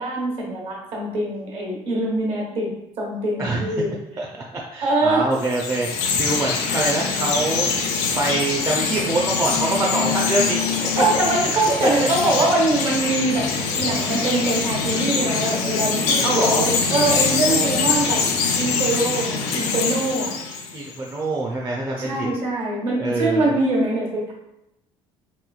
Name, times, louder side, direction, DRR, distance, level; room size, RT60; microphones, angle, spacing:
voice 1, 0.0-2.7 3.0-3.9 4.8-5.3 10.9-18.2 18.6-20.3 22.0-24.3, right 2 dB, 60° right, -2 dB, 1.2 m, -23 dB
voice 2, 4.7-7.7 8.2-10.7 11.4-11.5 12.0-12.1 16.2-16.7 17.5-18.2 20.7-22.3 23.0-23.5, right 2 dB, 25° right, -3 dB, 0.5 m, -25 dB
Chirp tweet, 5.3-20.9, left 5 dB, 90° left, 0.5 m, -23 dB
3.3 x 3.0 x 2.3 m, 0.84 s
cardioid pair, 110°, 11 cm